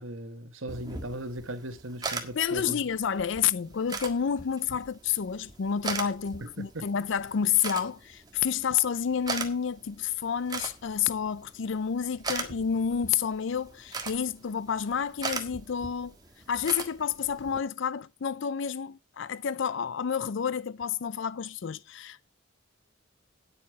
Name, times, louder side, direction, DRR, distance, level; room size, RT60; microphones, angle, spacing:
voice 1, 0.0-2.8 6.4-6.9, right 1 dB, 75° right, 1.3 m, -38 dB
sound 1, 0.7-17.6, right 4 dB, 20° right, 1.6 m, -40 dB
voice 2, 2.3-16.1 16.5-22.2, left 7 dB, 60° left, 0.4 m, -29 dB
9.9 x 8.4 x 4.7 m
head